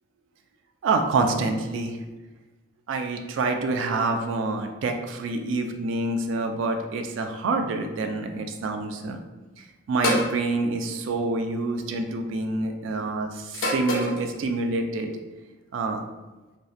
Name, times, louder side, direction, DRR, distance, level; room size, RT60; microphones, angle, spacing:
voice 1, 0.8-2.0 2.9-9.2 9.9-15.1 15.7-16.0, right 3 dB, 75° right, 5 dB, 0.3 m, -27 dB
sound 1, 10.0-10.4 11.6-11.9 13.5-14.2, left 1 dB, 75° left, 0.5 m, -26 dB
2.7 x 2.1 x 2.4 m, 1.2 s
head